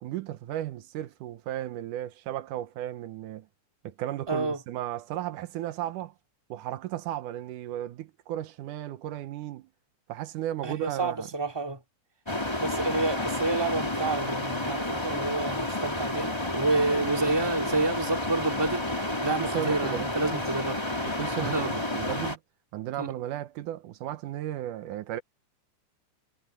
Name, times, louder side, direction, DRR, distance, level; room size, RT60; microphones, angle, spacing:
voice 1, 0.0-3.5 3.8-6.1 6.5-9.7 10.1-11.3 19.4-20.4 21.1-22.4 22.7-25.2, right 12 dB, 85° right, 2.5 m, -35 dB
voice 2, 4.3-4.6 10.6-11.8 12.6-18.9 19.2-20.8 21.4-21.8 23.0-23.1, right 2 dB, 10° right, 2.1 m, -29 dB
sound 1, 12.3-22.4, left 1 dB, 10° left, 2.7 m, -30 dB
omnidirectional pair, 3.5 m